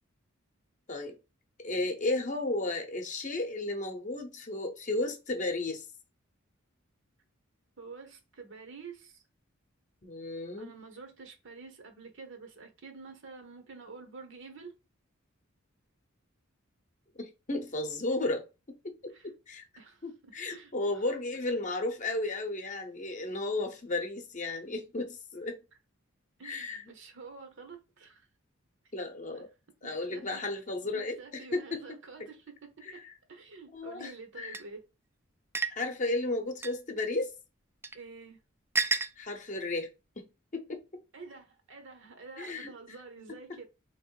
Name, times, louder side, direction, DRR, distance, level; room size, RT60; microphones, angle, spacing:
voice 1, 1.6-5.9 10.0-10.7 17.2-18.5 18.8-19.7 20.0-25.6 26.4-26.8 28.9-29.5 29.8-32.0 32.9-33.0 33.7-34.1 34.4-34.6 35.8-37.3 39.2-39.9 40.2-40.3 40.5-40.8 42.4-42.7, left 2 dB, 35° left, 0.7 m, -34 dB
voice 2, 7.8-9.2 10.6-14.8 19.1-19.3 19.8-21.1 26.4-28.3 29.3-29.5 29.8-30.5 30.8-34.8 37.9-38.4 41.1-43.7, right 4 dB, 60° right, 0.9 m, -48 dB
sound 1, 34.5-34.6 35.5-35.8 36.6-36.8 37.8-38.0 38.8-39.1, right 4 dB, 10° right, 0.3 m, -29 dB
3.1 x 2.9 x 4.6 m
head